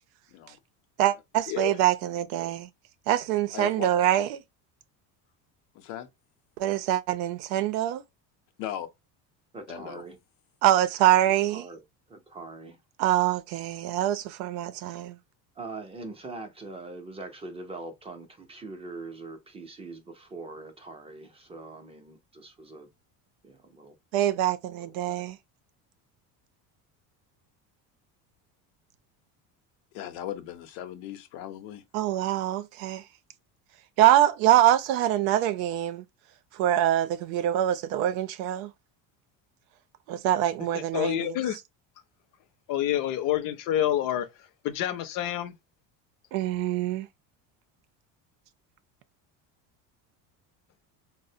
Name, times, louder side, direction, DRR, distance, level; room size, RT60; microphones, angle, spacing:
voice 1, 1.0-2.7 3.1-4.4 6.6-8.0 10.6-11.6 13.0-15.2 24.1-25.4 31.9-33.0 34.0-36.0 36.6-38.7 40.1-41.4 46.3-47.1, right 13 dB, 90° right, 0.6 m, -24 dB
voice 2, 3.5-3.9 5.7-6.1 8.6-8.9 9.7-10.0 29.9-31.8, left 11 dB, 90° left, 0.8 m, -38 dB
voice 3, 9.5-10.2 11.5-11.8 12.1-12.8 15.6-22.9 23.4-23.9 24.8-25.2, right 3 dB, 15° right, 0.5 m, -42 dB
voice 4, 40.7-41.6 42.7-44.3 44.6-45.5, left 11 dB, 55° left, 0.6 m, -28 dB
4.1 x 2.1 x 2.7 m
cardioid pair, 145°, 40 cm